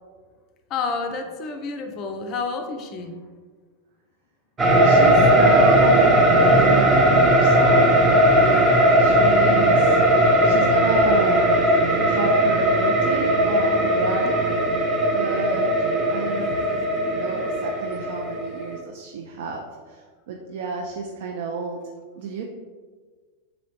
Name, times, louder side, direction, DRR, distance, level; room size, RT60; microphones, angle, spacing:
voice 1, 0.7-3.2, left 4 dB, 35° left, 5 dB, 0.4 m, -29 dB
sound 1, 4.6-18.8, right 1 dB, 20° right, 0.7 m, -18 dB
voice 2, 4.8-11.7 12.0-14.4 15.1-15.7 16.1-21.8 22.2-22.4, right 4 dB, 55° right, 1 dB, 0.3 m, -31 dB
4.0 x 3.0 x 2.8 m, 1.5 s
figure-of-eight pair, 90°, 0 cm